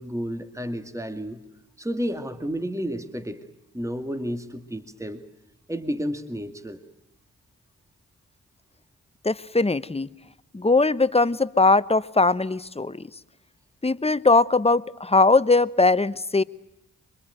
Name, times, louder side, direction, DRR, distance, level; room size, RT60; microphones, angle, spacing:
voice 1, 0.0-1.4 1.8-3.4 3.7-5.2 5.7-6.8, equal, 10° right, 9 dB, 2.2 m, -31 dB
voice 2, 9.2-10.1 10.5-13.1 13.8-16.4, left 3 dB, 20° left, 16 dB, 0.9 m, -20 dB
24.5 x 22.5 x 9.1 m, 0.86 s
cardioid pair, 45°, 33 cm